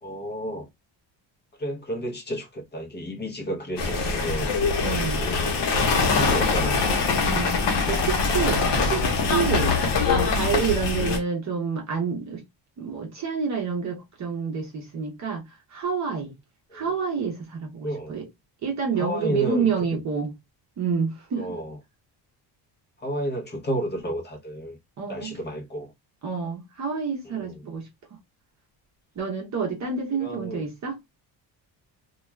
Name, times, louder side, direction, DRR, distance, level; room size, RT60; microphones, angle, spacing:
voice 1, 0.0-0.7 1.6-4.5 5.2-7.1 10.0-10.2 16.7-16.9 17.8-18.1 19.0-20.0 21.4-21.8 23.0-24.8 25.1-25.9 27.2-27.6 30.2-30.6, right 1 dB, 25° left, 0.7 m, -32 dB
sound 1, 3.8-11.2, left 4 dB, 70° left, 0.9 m, -23 dB
voice 2, 4.8-5.2 7.3-7.5 7.9-9.0 9.3-9.7 10.1-12.4 12.8-15.4 15.7-16.3 16.7-18.3 18.6-20.3 20.8-21.6 25.0-25.3 26.2-27.8 29.2-31.0, right 6 dB, 40° right, 0.7 m, -28 dB
2.3 x 2.2 x 3.1 m
cardioid pair, 180°, 43 cm